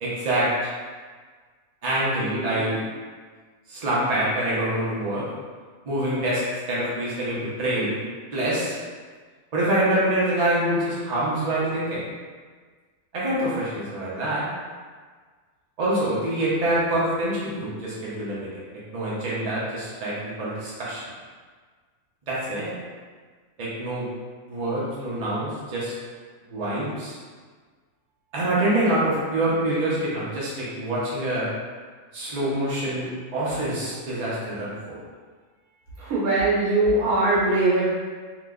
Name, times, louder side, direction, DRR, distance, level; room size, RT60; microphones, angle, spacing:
voice 1, 0.0-0.7 1.8-2.8 3.7-5.3 5.9-8.0 8.3-8.8 9.5-12.0 13.1-14.5 15.8-21.0 22.3-22.7 23.6-24.1 24.5-25.9 26.5-27.2 28.3-31.5 32.1-35.0, right 1 dB, 50° right, -8 dB, 0.5 m, -26 dB
voice 2, 36.0-37.8, right 2 dB, 75° right, -8 dB, 1.2 m, -21 dB
2.9 x 2.1 x 3.5 m, 1.5 s
omnidirectional pair, 1.6 m